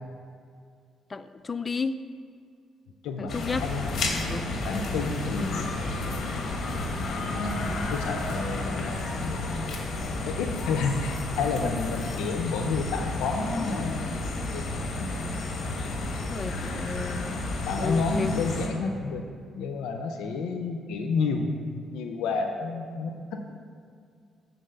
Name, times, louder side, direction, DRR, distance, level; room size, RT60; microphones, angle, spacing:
voice 1, 1.1-2.0 3.2-3.6 4.3-4.5 16.1-18.3, left 4 dB, 30° left, 11 dB, 0.3 m, -33 dB
voice 2, 3.0-3.3 3.6-3.9 4.6-5.8 7.2-9.9 10.2-14.3 14.5-14.7 17.7-19.2 19.5-23.4, left 4 dB, 90° left, 5 dB, 0.5 m, -30 dB
sound 1, 3.3-18.7, left 2 dB, 60° left, 1.1 m, -31 dB
7.5 x 4.0 x 6.8 m, 2.3 s
cardioid pair, 90°, 0 cm